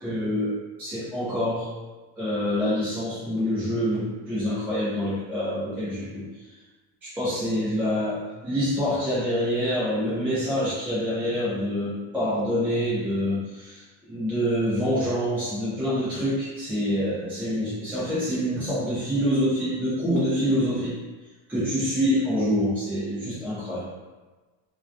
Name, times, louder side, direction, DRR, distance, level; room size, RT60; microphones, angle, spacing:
voice 1, 0.0-1.7 2.2-6.3 7.0-21.0 21.5-23.9, equal, 5° right, -11 dB, 0.3 m, -26 dB
2.3 x 2.2 x 2.4 m, 1.2 s
cardioid pair, 140°, 44 cm